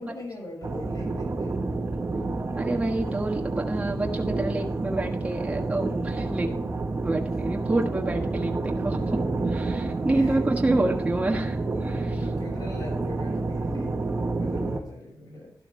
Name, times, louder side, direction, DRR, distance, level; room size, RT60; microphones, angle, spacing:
voice 1, 0.0-1.6 7.2-7.3 8.8-10.4 11.6-15.5, left 1 dB, 80° left, -2 dB, 6.1 m, -42 dB
sound 1, 0.6-14.8, right 3 dB, 45° right, 1.4 m, -29 dB
voice 2, 2.6-6.5 7.0-8.5 8.8-9.0 9.5-11.6 11.8-12.2, right 2 dB, 20° right, 1 dB, 1.5 m, -27 dB
12.5 x 12.0 x 3.4 m, 0.65 s
wide cardioid pair, 140°, 6 cm